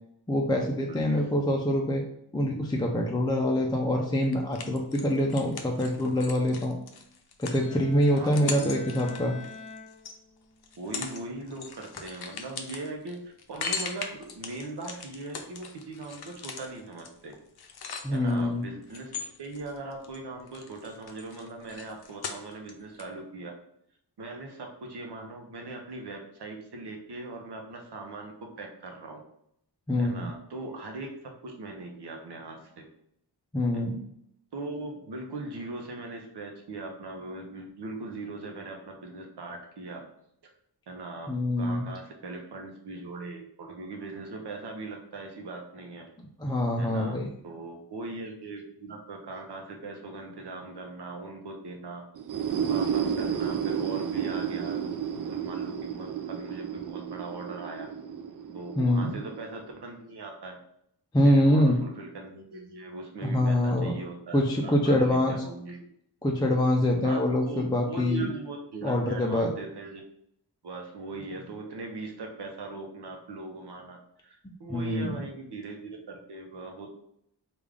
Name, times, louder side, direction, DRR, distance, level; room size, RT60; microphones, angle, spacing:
voice 1, 0.3-2.0 2.3-6.8 7.4-9.4 18.0-18.7 29.9-30.3 33.5-34.0 41.3-41.9 46.4-47.3 58.8-59.2 61.1-61.8 63.2-64.0 64.3-65.4 66.2-68.3 68.8-69.5 74.7-75.2, left 1 dB, 10° left, 0 dB, 0.4 m, -25 dB
voice 2, 0.9-1.3 8.1-9.4 10.8-13.2 13.5-17.3 18.1-19.1 19.4-23.5 24.2-28.3 28.6-29.2 30.0-32.8 33.7-33.8 34.5-40.1 40.4-40.5 40.9-41.3 41.6-46.1 46.8-47.1 47.4-52.0 52.7-54.9 55.3-57.9 58.5-60.6 61.2-65.8 67.0-70.0 70.6-76.9, right 3 dB, 70° right, 2 dB, 0.8 m, -40 dB
sound 1, 4.3-10.2 10.6-11.2 11.5-18.4 18.9-20.2 20.5-22.7 23.0-23.1, left 5 dB, 65° left, 0.6 m, -39 dB
Bowed string instrument, 7.5-10.6, left 3 dB, 40° left, 0.9 m, -46 dB
sound 2, 52.1-59.8, right 8 dB, 50° right, 0.4 m, -32 dB
3.5 x 2.5 x 3.4 m, 0.72 s
wide cardioid pair, 70°, 42 cm